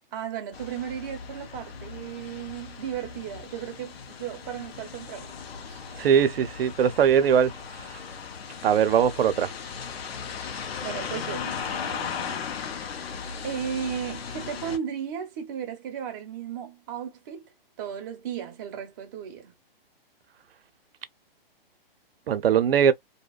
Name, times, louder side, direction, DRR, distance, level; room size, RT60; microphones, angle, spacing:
voice 1, 0.1-5.4 5.6-5.8 10.8-12.4 13.4-17.5 17.8-19.5, right 8 dB, 20° right, 0.6 m, -35 dB
sound 1, 0.5-14.8, left 6 dB, 85° left, 0.7 m, -37 dB
voice 2, 6.0-7.5 8.6-9.5 22.3-22.9, right 8 dB, 75° right, 0.5 m, -20 dB
2.7 x 2.1 x 2.3 m
hypercardioid pair, 160°, 30 cm